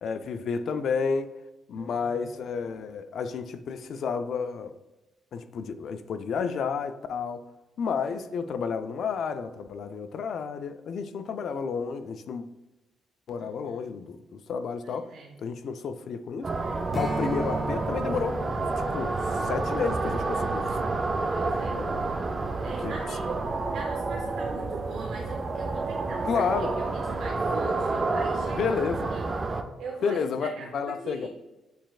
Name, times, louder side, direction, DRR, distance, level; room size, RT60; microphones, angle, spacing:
voice 1, 0.0-1.3 1.7-4.7 5.3-7.4 7.8-12.4 13.3-15.1 15.4-16.4 16.9-20.8 21.7-22.0 22.8-22.9 26.3-26.7 28.6-29.1 30.0-31.3, left 6 dB, 65° left, 0.3 m, -31 dB
voice 2, 1.7-2.3 13.4-13.9 14.8-15.4 16.5-16.8 21.3-21.8 22.6-23.4 23.7-28.8 29.1-31.3, right 4 dB, 75° right, 0.7 m, -41 dB
sound 1, 16.4-29.6, right 3 dB, 35° right, 0.4 m, -29 dB
Strum, 16.9-21.7, right 1 dB, 25° left, 0.8 m, -38 dB
7.3 x 3.1 x 2.3 m
cardioid pair, 90°, 0 cm